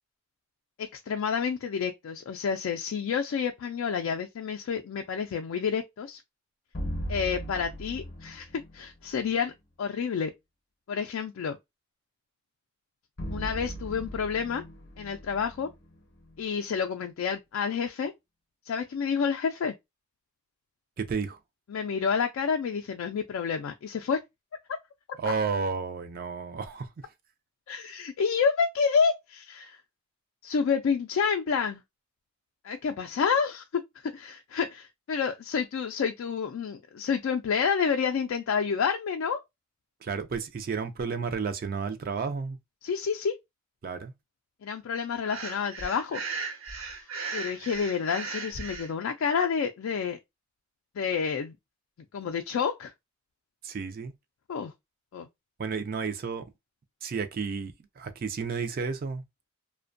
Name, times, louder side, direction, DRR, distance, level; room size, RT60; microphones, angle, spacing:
voice 1, 0.8-6.2 7.1-9.5 9.8-10.3 10.9-11.6 13.3-14.6 15.0-15.7 16.4-18.1 18.7-19.7 21.7-24.2 27.7-29.8 30.4-31.8 32.6-39.4 42.8-43.3 44.6-46.2 47.0-47.1 47.3-50.2 51.0-51.6 52.1-52.9 54.5-54.7 55.1-55.3, left 6 dB, 80° left, 0.3 m, -29 dB
sound 1, 6.7-8.9 13.2-16.4, equal, 50° left, 0.7 m, -38 dB
voice 2, 21.0-21.4 25.2-26.9 40.0-42.6 43.8-44.1 53.6-54.1 55.6-56.4 57.0-59.2, right 5 dB, 45° right, 0.3 m, -32 dB
Breathing, 45.2-48.9, right 4 dB, 90° right, 1.0 m, -37 dB
2.5 x 2.2 x 2.4 m
head